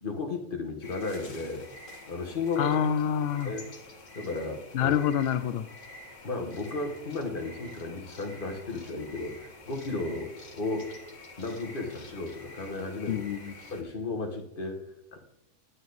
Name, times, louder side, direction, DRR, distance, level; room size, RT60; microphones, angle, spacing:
voice 1, 0.0-1.6 2.0-2.8 3.4-3.7 4.1-5.1 6.2-10.9 11.4-13.2 13.7-14.8 15.1-15.2, left 3 dB, 35° left, 3 dB, 1.6 m, -34 dB
sound 1, 0.8-13.8, left 2 dB, 50° left, 2.4 m, -48 dB
voice 2, 2.6-3.5 4.7-5.7 13.1-13.5, left 8 dB, 85° left, 12 dB, 0.5 m, -27 dB
11.5 x 9.2 x 4.0 m, 0.84 s
omnidirectional pair, 1.7 m